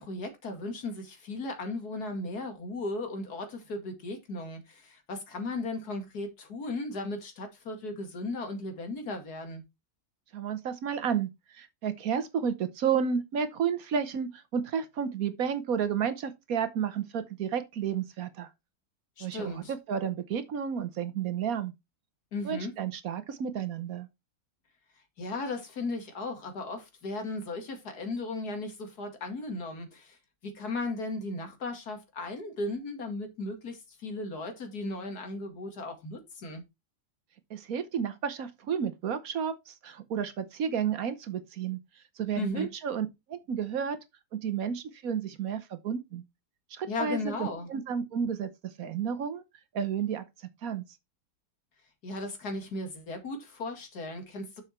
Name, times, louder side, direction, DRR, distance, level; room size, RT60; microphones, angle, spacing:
voice 1, 0.0-9.6 19.2-19.7 22.3-22.7 25.2-30.2 30.4-36.6 42.4-42.7 46.9-47.7 52.0-54.6, left 2 dB, 80° left, 2.4 m, -36 dB
voice 2, 10.3-18.5 19.2-21.7 22.4-24.1 37.5-41.8 42.2-44.0 44.3-46.2 46.7-49.4 49.7-50.2 50.6-50.8, right 7 dB, 65° right, 1.3 m, -31 dB
7.1 x 5.7 x 4.3 m
omnidirectional pair, 1.7 m